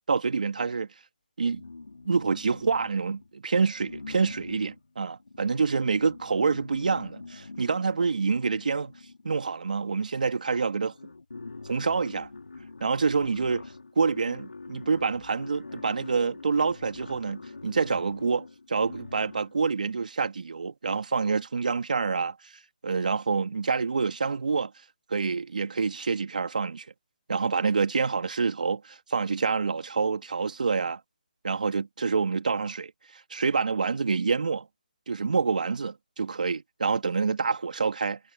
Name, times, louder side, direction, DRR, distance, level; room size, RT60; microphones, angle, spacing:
voice 1, 0.1-0.9 1.4-1.6 2.0-8.9 9.2-10.9 11.7-12.3 12.8-13.6 14.0-24.7 25.1-26.9 27.3-31.0 31.4-34.7 35.1-38.2, right 5 dB, 65° right, 2.8 m, -27 dB
sound 1, 1.5-3.3 3.8-9.4 10.4-10.5 10.7-19.6, left 3 dB, 85° left, 3.4 m, -44 dB
hypercardioid pair, 160°, 5 cm